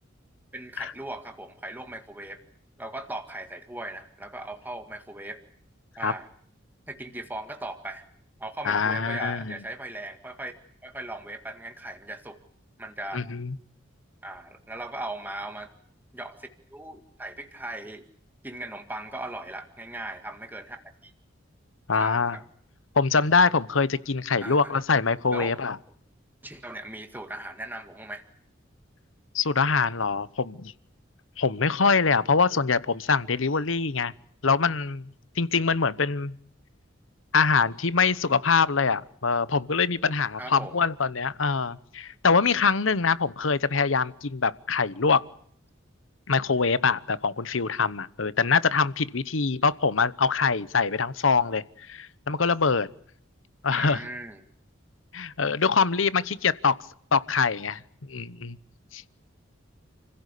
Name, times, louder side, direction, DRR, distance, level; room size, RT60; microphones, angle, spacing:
voice 1, 0.5-2.4 2.8-5.4 6.0-6.3 6.9-8.1 8.4-10.5 10.8-12.4 12.8-13.2 14.2-15.7 16.1-18.0 18.4-21.1 22.0-22.4 24.4-24.7 25.3-25.5 26.4-28.2 40.4-40.8 53.7-54.4, right 1 dB, 10° right, 2.0 m, -38 dB
voice 2, 8.6-9.6 13.1-13.5 21.9-22.4 22.9-25.8 29.3-30.7 31.4-34.1 34.4-35.1 35.4-36.3 37.3-45.2 46.3-52.9 53.6-54.0 55.1-56.8 57.1-57.8 58.1-58.6 58.9-59.0, left 5 dB, 85° left, 1.0 m, -24 dB
29.5 x 16.0 x 8.4 m
head